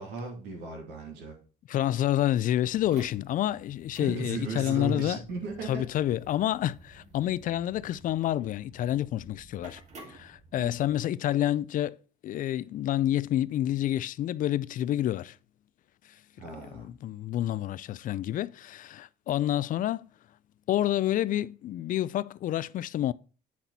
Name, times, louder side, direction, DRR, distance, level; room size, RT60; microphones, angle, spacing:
voice 1, 0.0-1.3 4.0-5.9 10.6-10.7 16.4-16.9, right 3 dB, 90° right, 2.7 m, -36 dB
voice 2, 1.7-5.2 5.6-9.8 10.1-12.0 12.2-15.4 16.7-20.1 20.7-23.1, left 12 dB, 50° left, 0.4 m, -28 dB
sound 1, 2.7-11.0, right 2 dB, 45° right, 2.2 m, -52 dB
8.6 x 6.0 x 4.1 m
cardioid pair, 110°, 17 cm